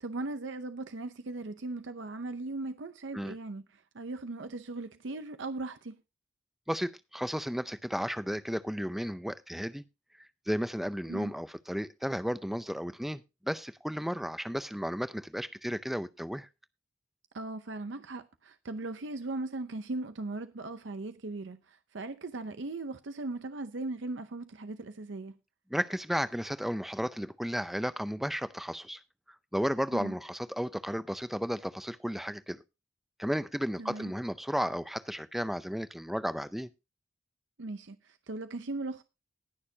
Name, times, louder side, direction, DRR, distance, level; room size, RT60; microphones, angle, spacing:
voice 1, 0.0-6.0 11.1-11.3 17.3-25.4 29.9-30.1 33.8-34.1 37.6-39.0, right 2 dB, 75° right, 0.7 m, -38 dB
voice 2, 6.7-9.8 10.5-16.5 25.7-29.0 29.5-32.6 33.2-36.7, equal, ahead, 0.5 m, -33 dB
19.5 x 6.6 x 2.8 m
head